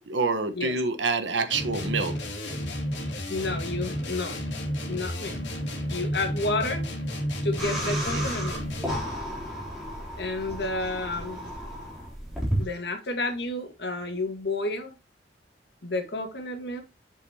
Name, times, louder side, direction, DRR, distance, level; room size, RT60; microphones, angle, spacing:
voice 1, 0.1-2.1 7.8-8.2, right 4 dB, 85° right, 1.3 m, -27 dB
sound 1, 1.5-9.2, equal, 80° left, 2.5 m, -31 dB
voice 2, 3.3-4.5 4.9-5.5 5.9-6.9 7.4-8.7 10.2-11.5 12.6-15.0 15.8-16.8, left 2 dB, 60° left, 1.8 m, -31 dB
sound 2, 7.6-12.6, equal, ahead, 3.4 m, -33 dB
7.9 x 6.6 x 2.9 m
head